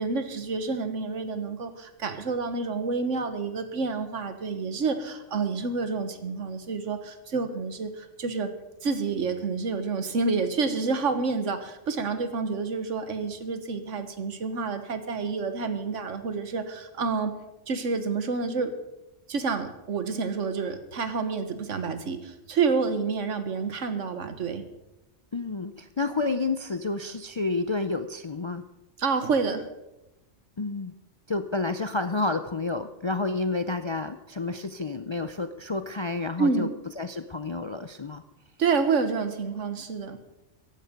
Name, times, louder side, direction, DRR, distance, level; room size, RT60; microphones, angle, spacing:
voice 1, 0.0-8.5 8.8-17.3 17.7-18.7 19.3-24.6 29.0-29.7 36.4-36.7 38.6-40.2, right 4 dB, 85° right, 10 dB, 1.6 m, -28 dB
voice 2, 25.3-28.6 30.6-30.9 31.3-36.7 37.0-38.2, left 3 dB, 45° left, 10 dB, 0.4 m, -30 dB
15.0 x 11.0 x 5.2 m, 0.95 s
omnidirectional pair, 1.2 m